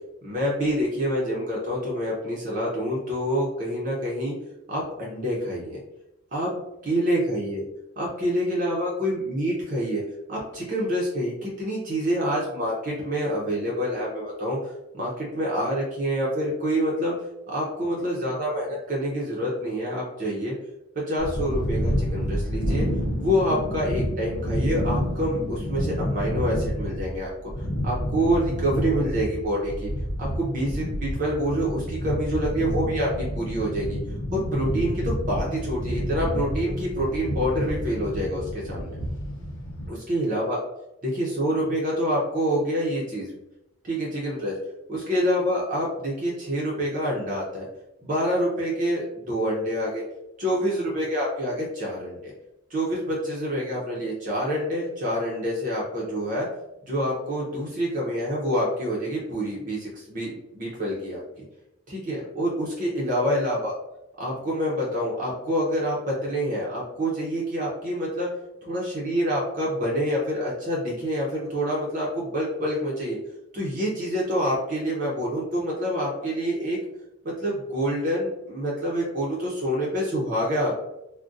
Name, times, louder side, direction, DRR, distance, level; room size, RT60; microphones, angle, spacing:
voice 1, 0.2-4.3 4.7-5.8 6.3-6.6 6.8-7.6 8.0-10.0 10.3-17.1 17.5-20.5 21.1-22.9 23.2-27.3 27.6-29.9 30.2-34.0 34.3-39.0 39.9-40.6 41.0-43.4 43.8-44.5 44.9-47.6 48.0-50.0 50.4-52.3 52.7-56.5 56.8-61.2 61.9-63.7 64.2-68.3 68.6-73.2 73.5-76.8 77.4-80.8, equal, 40° right, -4 dB, 0.6 m, -27 dB
sound 1, 21.2-39.9, equal, 70° left, 0.7 m, -29 dB
3.6 x 2.2 x 2.5 m, 0.89 s
head